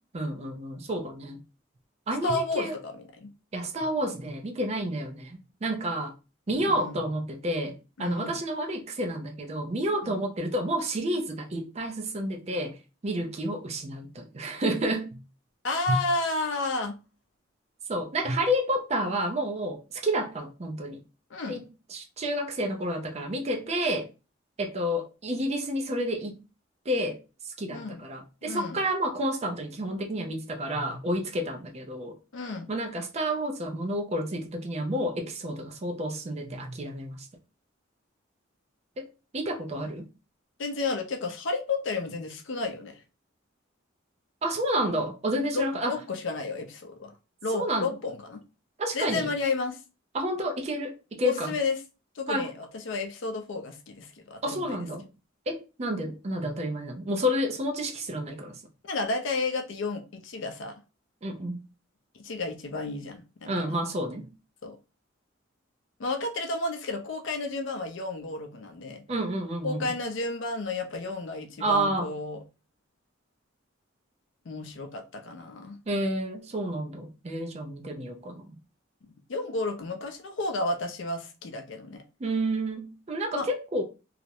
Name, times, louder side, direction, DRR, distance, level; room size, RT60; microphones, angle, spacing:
voice 1, 0.1-1.4 2.1-2.8 3.5-6.1 6.5-12.8 13.0-15.2 15.9-16.0 17.9-21.0 21.5-21.6 21.9-24.1 24.6-26.4 26.9-27.2 27.4-32.2 32.7-37.3 39.0-39.1 39.3-40.1 44.4-46.0 47.5-47.9 48.8-49.3 50.1-51.5 52.3-52.5 54.4-55.1 55.5-58.6 61.2-61.6 63.5-64.3 69.1-69.9 71.6-72.1 75.9-78.6 82.2-83.8, right 1 dB, 35° right, 0.4 m, -30 dB
voice 2, 2.2-3.3 6.7-7.0 8.0-8.3 10.0-10.2 15.6-17.0 21.3-21.6 27.7-28.0 28.4-28.8 32.3-32.7 40.6-43.0 45.5-47.1 47.4-48.4 48.9-49.8 51.2-51.7 52.2-54.9 58.8-60.7 62.1-63.8 64.6-64.8 66.0-69.0 69.6-72.4 74.5-75.8 79.0-82.0 83.3-83.5, left 3 dB, 70° left, 0.5 m, -32 dB
2.4 x 2.0 x 2.7 m
head